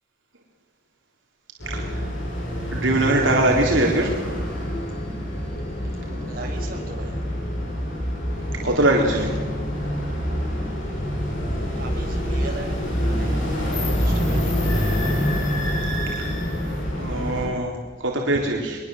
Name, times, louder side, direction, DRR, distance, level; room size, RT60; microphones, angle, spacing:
sound 1, 1.6-17.5, equal, 85° left, 7.9 m, -26 dB
voice 1, 1.7-2.1 2.7-4.1 8.6-9.3 17.0-18.8, right 1 dB, 85° right, 0 dB, 3.7 m, -22 dB
voice 2, 6.2-7.2 11.5-14.9, right 2 dB, 50° right, 0 dB, 6.5 m, -39 dB
23.0 x 22.0 x 7.8 m, 1.4 s
head